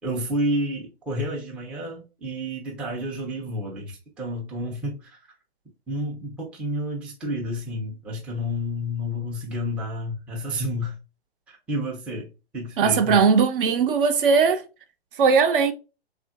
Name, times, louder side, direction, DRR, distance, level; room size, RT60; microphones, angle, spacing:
voice 1, 0.0-5.2 5.9-10.9 11.5-12.3 12.5-13.2, equal, 5° right, 0.4 m, -30 dB
voice 2, 12.8-14.6 15.2-15.7, right 5 dB, 55° right, 0.6 m, -19 dB
3.5 x 2.4 x 2.3 m
hypercardioid pair, 120°, 33 cm